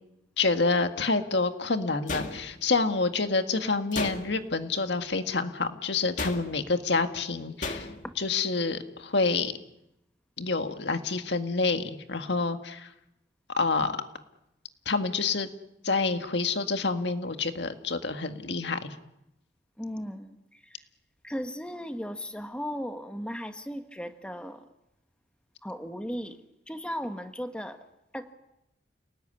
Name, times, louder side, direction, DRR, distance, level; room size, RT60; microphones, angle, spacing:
voice 1, 0.4-7.9 8.2-9.5 10.4-12.9 13.6-13.9 14.9-15.5 15.8-18.9, left 3 dB, 70° left, 8 dB, 1.7 m, -28 dB
sound 1, 2.1-2.8 3.9-4.6 6.2-6.7 7.6-8.1, left 3 dB, 40° left, 2.1 m, -35 dB
voice 2, 19.8-20.8 21.2-24.7 25.6-26.4 26.7-27.8 28.1-28.3, equal, 5° left, 7 dB, 1.3 m, -36 dB
29.5 x 19.5 x 9.9 m, 0.87 s
head